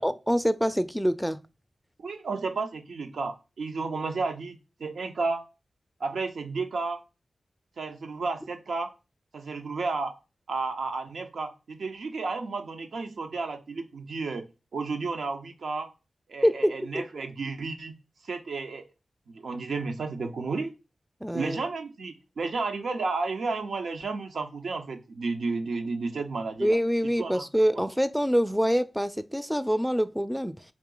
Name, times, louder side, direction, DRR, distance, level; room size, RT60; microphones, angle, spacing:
voice 1, 0.0-1.4 16.4-16.7 21.2-21.6 26.6-30.6, equal, ahead, 0.3 m, -25 dB
voice 2, 2.0-5.5 6.0-7.0 7.8-8.9 9.3-10.2 10.5-15.9 16.3-18.8 19.3-20.7 21.3-26.8 27.2-27.4 27.7-27.9, right 4 dB, 85° right, 0.6 m, -32 dB
3.7 x 2.9 x 3.8 m
cardioid pair, 45°, 0 cm